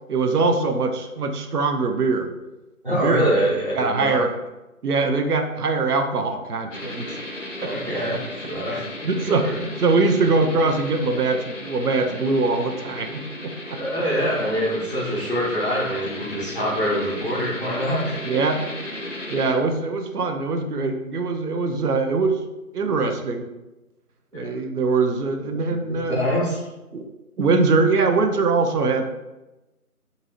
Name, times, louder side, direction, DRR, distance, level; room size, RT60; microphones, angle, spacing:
voice 1, 0.1-2.3 2.9-3.3 3.7-4.4 4.8-7.2 7.6-7.7 9.0-13.8 18.2-18.6 19.3-22.4 22.7-23.5 24.3-26.2 26.9-27.1 27.4-29.0, right 3 dB, 85° right, 5 dB, 0.6 m, -22 dB
voice 2, 2.8-4.2 7.6-8.2 8.5-9.6 13.7-18.2 24.3-24.5 25.5-26.7, equal, 35° right, -8 dB, 1.0 m, -25 dB
sound 1, 6.7-19.5, left 1 dB, 55° left, 0.5 m, -35 dB
2.7 x 2.6 x 2.9 m, 1.0 s
figure-of-eight pair, 175°, 45 cm